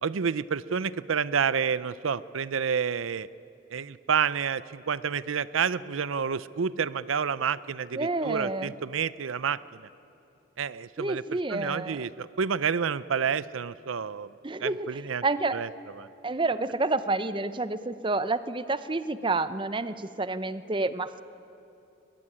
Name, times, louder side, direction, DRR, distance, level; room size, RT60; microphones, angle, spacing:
voice 1, 0.0-3.3 3.7-9.8 10.6-14.3 14.6-15.2 15.5-15.7 16.0-16.1, right 6 dB, 85° right, 17 dB, 0.6 m, -29 dB
voice 2, 7.9-8.7 11.0-12.0 14.4-15.6 16.2-21.2, right 3 dB, 25° right, 13 dB, 0.7 m, -29 dB
22.5 x 20.5 x 10.0 m, 2.8 s
head